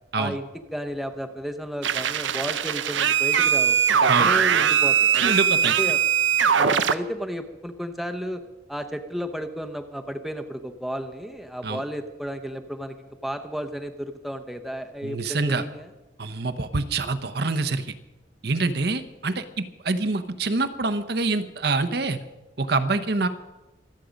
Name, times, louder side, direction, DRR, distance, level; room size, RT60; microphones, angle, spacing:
voice 1, 0.1-5.3 5.8-6.1 6.5-8.4 8.7-15.9, equal, ahead, 6 dB, 0.8 m, -33 dB
sound 1, 1.8-6.9, right 8 dB, 85° right, 0.7 m, -21 dB
voice 2, 5.2-5.7 11.6-11.8 15.0-15.6 16.2-17.9 18.4-22.2 22.6-23.3, right 3 dB, 60° right, 9 dB, 0.9 m, -25 dB
25.5 x 8.5 x 5.2 m, 1.1 s
head